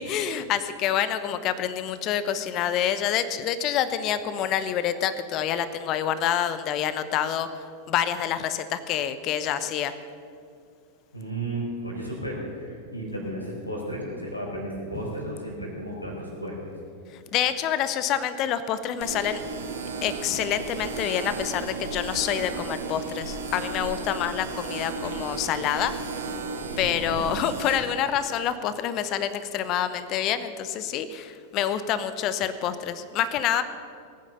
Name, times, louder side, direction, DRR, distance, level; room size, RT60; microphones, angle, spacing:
voice 1, 0.0-9.9 17.1-19.4 20.0-25.9 26.8-33.6, left 9 dB, 35° left, 13 dB, 0.8 m, -27 dB
voice 2, 11.1-16.6 26.8-27.2, right 1 dB, 85° left, -2 dB, 4.3 m, -34 dB
sound 1, 19.0-27.8, right 4 dB, 60° right, 1.9 m, -34 dB
19.0 x 9.2 x 6.8 m, 2.3 s
figure-of-eight pair, 90°, 0 cm